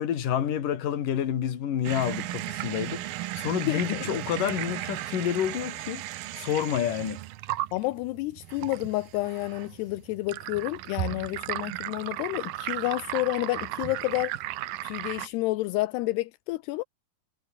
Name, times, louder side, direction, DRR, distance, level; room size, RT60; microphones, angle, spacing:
voice 1, 0.0-6.0 6.4-7.2, left 9 dB, 55° left, 3.7 m, -29 dB
sound 1, 1.8-15.3, right 16 dB, 75° right, 2.5 m, -35 dB
voice 2, 3.7-4.0 7.7-14.3 14.8-16.8, left 19 dB, 80° left, 2.8 m, -30 dB
omnidirectional pair, 4.7 m